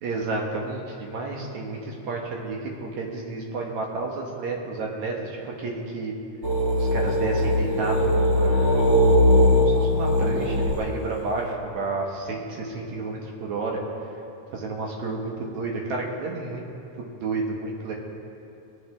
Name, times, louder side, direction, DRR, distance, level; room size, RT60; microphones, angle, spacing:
voice 1, 0.0-6.1 6.8-8.8 9.6-13.8 14.5-16.6 17.0-17.9, right 3 dB, 75° right, -1 dB, 2.8 m, -31 dB
sound 1, 6.4-11.5, left 1 dB, 40° right, 1.1 m, -20 dB
22.5 x 8.2 x 3.5 m, 2.7 s
omnidirectional pair, 3.3 m